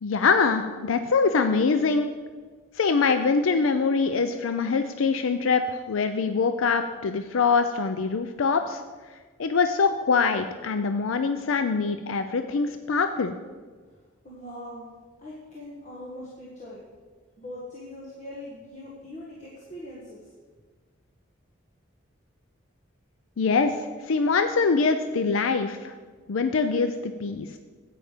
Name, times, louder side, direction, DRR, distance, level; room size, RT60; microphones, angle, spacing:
voice 1, 0.0-2.1 2.7-8.8 9.4-13.4 23.4-23.7 24.0-25.9 26.3-27.5, left 4 dB, 85° left, 9 dB, 0.5 m, -24 dB
voice 2, 14.2-14.9 15.2-16.8 17.4-20.3, left 1 dB, 35° left, -5 dB, 1.5 m, -41 dB
9.6 x 8.6 x 5.0 m, 1.5 s
head